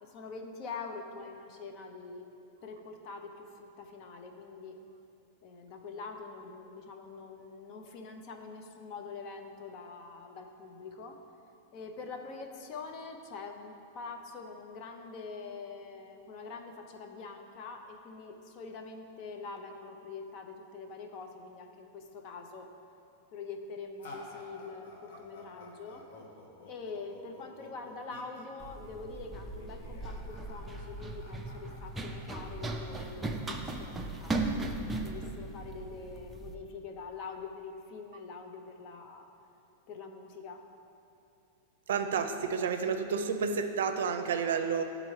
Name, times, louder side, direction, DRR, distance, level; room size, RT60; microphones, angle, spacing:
voice 1, 0.0-2.3 2.6-4.8 5.4-11.2 11.7-22.7 23.3-26.0 26.7-39.3 39.9-40.6, left 4 dB, 40° left, 4 dB, 0.6 m, -44 dB
sound 1, 24.0-33.9, left 2 dB, 75° left, 1.0 m, -52 dB
Run, 28.6-36.5, right 2 dB, 10° right, 0.4 m, -37 dB
voice 2, 41.9-44.8, right 6 dB, 85° right, 7 dB, 0.5 m, -30 dB
11.0 x 3.8 x 3.2 m, 2.7 s
supercardioid pair, 150°, 0 cm